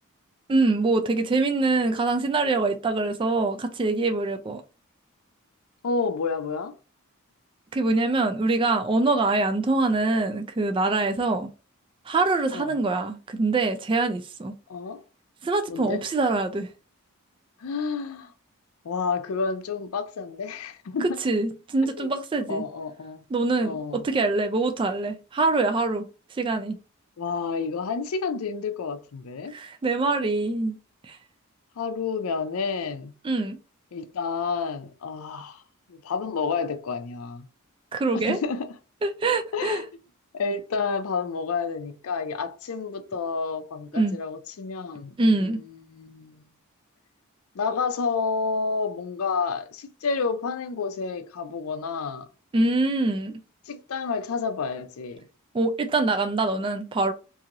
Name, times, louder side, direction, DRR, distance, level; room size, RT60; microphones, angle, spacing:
voice 1, 0.5-4.6 7.7-11.5 12.1-14.5 15.4-16.7 21.0-22.6 23.3-26.8 29.5-30.8 31.0-31.2 33.2-33.6 37.9-38.4 39.0-39.8 43.9-44.2 45.2-45.6 52.5-53.4 55.5-57.1, right 3 dB, 25° right, 0.3 m, -24 dB
voice 2, 5.8-6.7 12.5-12.8 14.7-15.0 15.7-16.0 17.6-18.3 18.8-21.2 22.0-22.1 22.5-23.2 23.6-24.1 27.2-29.5 31.8-33.1 33.9-35.6 35.9-37.5 38.1-38.7 39.5-39.9 40.3-46.4 47.5-52.3 53.7-55.3, left 5 dB, 75° left, 0.5 m, -30 dB
2.9 x 2.7 x 2.5 m
head